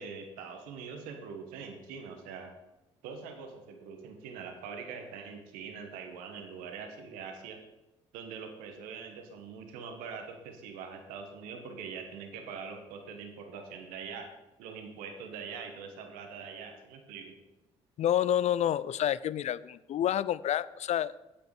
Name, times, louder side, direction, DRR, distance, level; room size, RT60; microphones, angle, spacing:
voice 1, 0.0-2.5 3.0-7.6 8.1-14.3 14.6-17.3, right 5 dB, 75° right, 5 dB, 1.3 m, -43 dB
voice 2, 18.0-21.2, left 11 dB, 50° left, 19 dB, 0.4 m, -29 dB
8.8 x 8.5 x 4.8 m, 0.99 s
hypercardioid pair, 50°, 15 cm